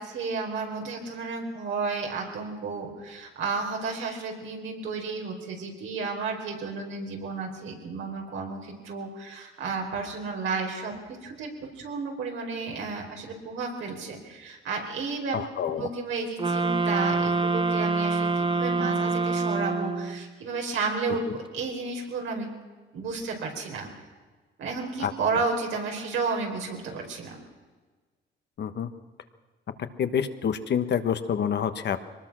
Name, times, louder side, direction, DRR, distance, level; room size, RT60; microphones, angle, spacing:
voice 1, 0.0-10.9 11.2-11.5 11.8-22.5 22.9-23.9 24.6-27.4, right 4 dB, 80° right, 1 dB, 4.7 m, -32 dB
voice 2, 15.3-15.9 25.0-25.1 28.6-28.9 30.0-32.0, left 8 dB, 60° left, 9 dB, 1.4 m, -27 dB
sound 1, 16.4-20.3, right 3 dB, 25° right, 1.1 m, -26 dB
23.5 x 20.0 x 6.2 m, 1.4 s
cardioid pair, 90°, 20 cm